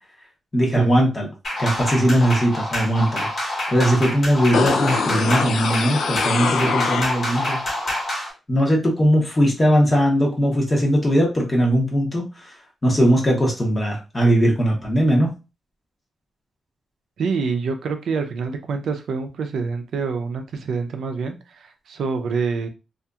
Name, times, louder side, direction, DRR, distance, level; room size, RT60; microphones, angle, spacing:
voice 1, 0.5-1.3 1.6-7.6 8.5-12.6 12.8-15.3, equal, 20° left, -2 dB, 0.8 m, -19 dB
sound 1, 1.4-8.3, left 1 dB, 40° left, 1.3 m, -27 dB
sound 2, 4.5-7.5 7.8-7.9, left 5 dB, 85° left, 0.3 m, -24 dB
voice 2, 17.2-22.7, right 5 dB, 75° right, 6 dB, 0.4 m, -26 dB
2.8 x 2.5 x 2.3 m, 0.29 s
wide cardioid pair, 155°, 0 cm